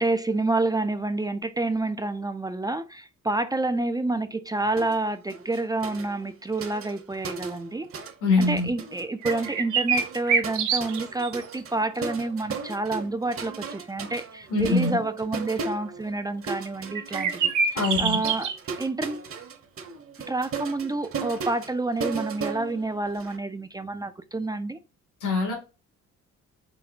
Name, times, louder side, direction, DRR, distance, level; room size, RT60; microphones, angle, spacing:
voice 1, 0.0-7.9 8.4-18.5 18.8-19.2 20.3-24.8, right 2 dB, 15° right, 0.3 m, -28 dB
sound 1, 4.8-5.0 5.3-8.1 8.4-23.4, right 5 dB, 45° right, 0.9 m, -37 dB
voice 2, 8.2-8.7 14.5-15.0 17.7-18.2 25.2-25.5, left 3 dB, 85° left, 1.7 m, -23 dB
sound 2, 9.2-11.3 11.6-11.7 17.0-18.6, right 6 dB, 75° right, 0.9 m, -25 dB
5.0 x 2.3 x 3.4 m
cardioid pair, 90°, 30 cm